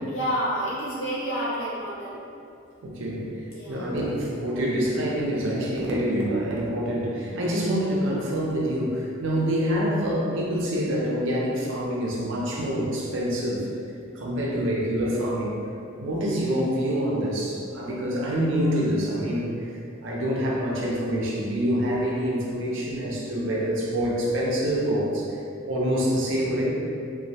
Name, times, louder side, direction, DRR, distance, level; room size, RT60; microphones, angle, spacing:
voice 1, 0.1-2.2 3.5-3.9, equal, 85° left, -7 dB, 0.7 m, -29 dB
voice 2, 2.8-3.3 3.7-13.7 14.1-15.5 16.0-19.7 20.0-25.2 25.7-26.7, equal, 65° right, -4 dB, 0.5 m, -26 dB
2.2 x 2.0 x 2.7 m, 2.5 s
head